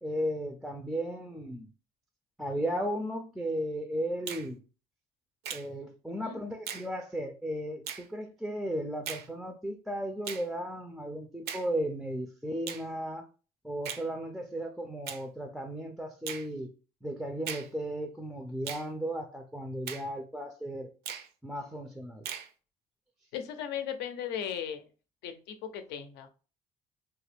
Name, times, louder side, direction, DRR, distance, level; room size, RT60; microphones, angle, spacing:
voice 1, 0.0-1.7 2.4-4.6 5.5-13.3 13.6-16.7 17.0-20.9 21.4-22.3, equal, ahead, 0.3 m, -35 dB
Finger snapping, 4.3-4.5 5.4-5.7 6.7-6.9 7.9-8.1 9.1-9.3 10.3-10.5 11.5-11.7 12.7-12.9 13.8-14.1 15.1-15.2 16.3-16.5 17.5-17.7 18.7-18.9 19.9-20.1 21.1-21.3 22.3-22.5, right 8 dB, 70° right, 0.5 m, -38 dB
voice 2, 23.3-24.8 25.2-26.3, left 8 dB, 85° left, 0.5 m, -37 dB
2.8 x 2.3 x 3.3 m
cardioid pair, 110°, 17 cm